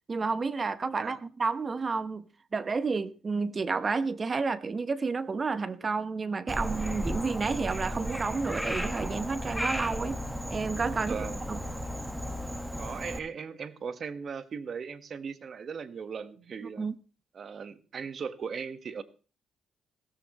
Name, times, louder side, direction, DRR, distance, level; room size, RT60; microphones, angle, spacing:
voice 1, 0.1-2.2 2.5-10.2 10.5-11.2 11.5-11.6 16.8-16.9, right 4 dB, 35° right, 1.0 m, -30 dB
voice 2, 0.9-1.2 10.9-11.5 12.8-16.9 17.3-19.0, right 6 dB, 50° right, 1.4 m, -38 dB
Frog, 6.5-13.2, equal, 5° right, 1.5 m, -34 dB
17.0 x 14.0 x 3.1 m
cardioid pair, 90°, 0 cm